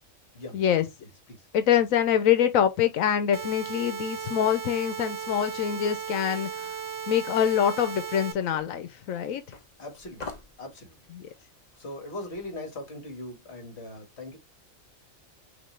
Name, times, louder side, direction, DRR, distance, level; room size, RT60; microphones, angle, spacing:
voice 1, 0.5-0.8 1.5-6.7 7.1-9.4 11.2-11.3, left 9 dB, 85° left, 1.1 m, -25 dB
sound 1, 3.3-8.3, right 7 dB, 30° right, 0.4 m, -36 dB
sound 2, 7.4-12.5, left 4 dB, 35° left, 0.9 m, -47 dB
voice 2, 9.8-10.3 10.6-11.0 11.8-14.4, left 1 dB, 55° left, 2.0 m, -40 dB
6.1 x 2.7 x 3.2 m
omnidirectional pair, 1.4 m